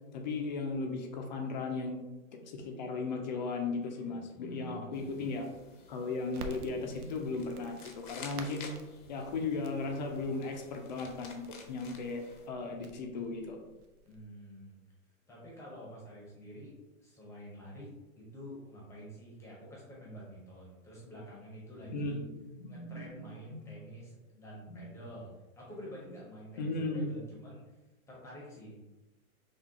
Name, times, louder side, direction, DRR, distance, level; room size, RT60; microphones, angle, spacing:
voice 1, 0.1-2.0 2.4-5.4 5.9-8.7 9.1-12.2 12.5-13.6 21.9-22.3 22.6-23.1 23.5-23.7 24.7-24.8 26.6-27.1, left 3 dB, 30° left, 3 dB, 0.5 m, -36 dB
voice 2, 4.5-5.2 14.0-14.8 15.3-17.9 18.2-22.2 22.7-27.7 28.1-28.8, equal, 5° left, -5 dB, 0.8 m, -48 dB
sound 1, 4.9-12.5, left 4 dB, 90° left, 1.0 m, -53 dB
Crackle, 6.3-14.2, right 3 dB, 85° right, 0.8 m, -51 dB
6.0 x 2.4 x 2.8 m, 1.1 s
hypercardioid pair, 150°, 43 cm